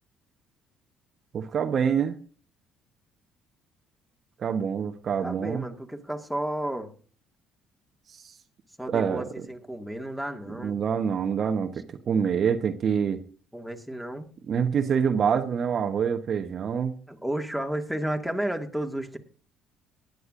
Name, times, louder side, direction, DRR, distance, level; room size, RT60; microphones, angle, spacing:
voice 1, 1.3-2.2 4.4-5.6 8.1-8.3 8.9-9.2 10.6-13.2 14.5-16.9, right 7 dB, 50° right, 1.0 m, -26 dB
voice 2, 5.2-6.9 8.8-10.8 13.5-14.3 17.1-19.2, right 1 dB, ahead, 2.0 m, -32 dB
19.0 x 9.3 x 2.6 m
hypercardioid pair, 55°, 0 cm